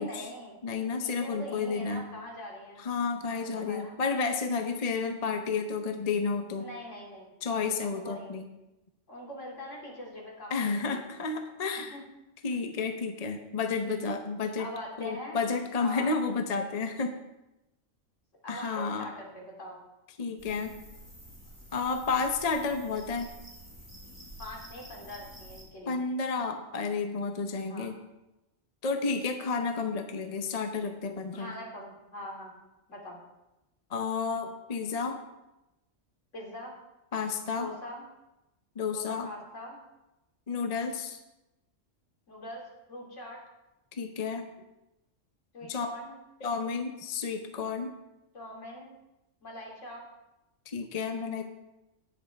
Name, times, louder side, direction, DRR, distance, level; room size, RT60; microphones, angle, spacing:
voice 1, 0.0-0.6 1.0-2.8 3.3-3.9 6.6-7.3 7.8-8.3 9.1-11.1 11.9-12.0 13.8-14.2 14.6-15.4 15.8-16.2 18.4-19.8 24.4-26.0 27.7-27.9 31.3-32.5 32.9-33.2 36.3-36.8 37.5-38.0 38.9-39.8 42.3-43.4 45.5-46.1 48.3-48.9 49.4-50.1, left 1 dB, 70° left, -2 dB, 2.9 m, -43 dB
voice 2, 0.6-2.0 2.8-6.6 7.4-8.5 10.5-12.0 12.4-14.7 15.0-17.1 18.5-19.1 20.2-20.7 21.7-23.3 25.9-28.0 28.8-31.5 33.9-35.2 37.1-37.7 38.8-39.3 40.5-41.2 43.9-44.5 45.7-45.9 46.4-47.9 50.7-51.4, left 4 dB, 35° left, 6 dB, 0.7 m, -31 dB
sound 1, 20.4-25.6, equal, 15° left, 3.7 m, -49 dB
17.5 x 6.8 x 3.4 m, 0.96 s
omnidirectional pair, 1.3 m